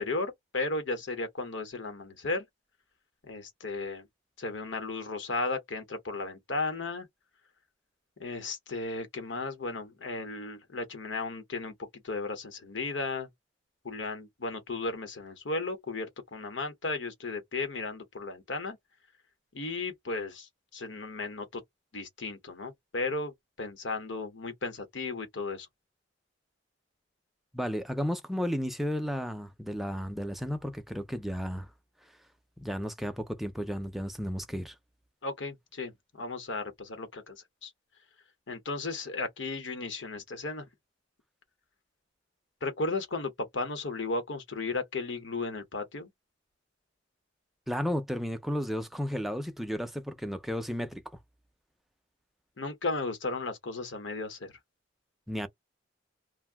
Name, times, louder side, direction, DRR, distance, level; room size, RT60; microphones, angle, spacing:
voice 1, 0.0-2.5 3.2-4.1 4.4-7.1 8.2-13.3 13.8-18.8 19.5-21.6 21.9-25.7 35.2-37.4 37.6-37.7 38.5-40.7 42.6-46.1 52.6-54.5, left 3 dB, 75° left, 1.0 m, -35 dB
voice 2, 27.5-31.7 32.6-34.8 47.7-51.0 55.3-55.5, equal, ahead, 0.4 m, -33 dB
2.5 x 2.1 x 3.4 m
head